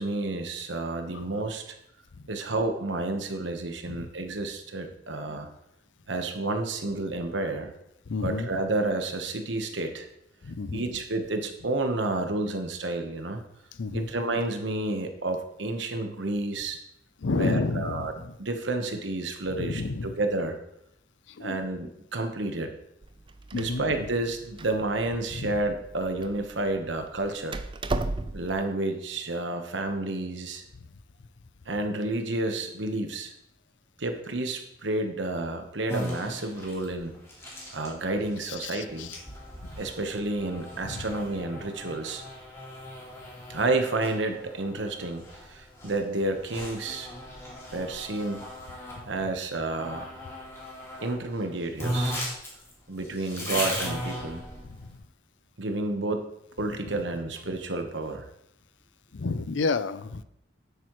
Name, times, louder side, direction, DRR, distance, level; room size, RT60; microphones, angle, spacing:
voice 1, 0.0-1.7 2.3-5.5 6.1-7.7 8.2-10.1 10.7-13.4 13.9-16.8 17.4-18.1 18.4-20.6 21.4-22.7 23.5-27.6 28.3-30.6 31.7-33.3 34.0-37.1 37.7-39.1 39.8-42.2 43.5-47.1 47.7-48.4 49.1-50.1 51.0-52.2 52.9-54.5 55.6-56.3 56.6-58.3, right 2 dB, 70° right, 6 dB, 1.2 m, -30 dB
voice 2, 8.1-8.5 10.4-10.8 13.7-14.1 17.2-18.3 19.5-20.1 21.3-21.6 23.5-24.0 25.3-25.6 38.4-39.2 39.6-39.7 40.8-41.1 54.6-54.9 56.6-57.0 59.1-60.2, left 3 dB, 75° left, 14 dB, 0.5 m, -31 dB
Door, 23.0-28.6, right 2 dB, 25° right, 0.4 m, -36 dB
sound 1, 35.9-49.0 49.7-51.2 51.4-51.5 51.8-54.9, equal, 15° left, 2.5 m, -37 dB
10.5 x 8.4 x 3.1 m, 0.78 s
head